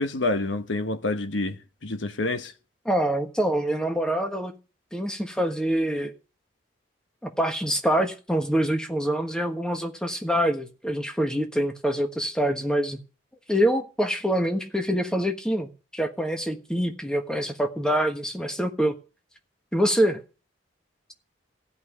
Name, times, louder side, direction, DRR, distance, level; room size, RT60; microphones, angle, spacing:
voice 1, 0.0-2.5, left 2 dB, 80° left, 1.1 m, -28 dB
voice 2, 2.8-4.5 4.9-6.1 7.2-13.0 13.5-18.9 19.7-20.2, equal, 5° left, 1.3 m, -25 dB
15.5 x 5.4 x 9.9 m
head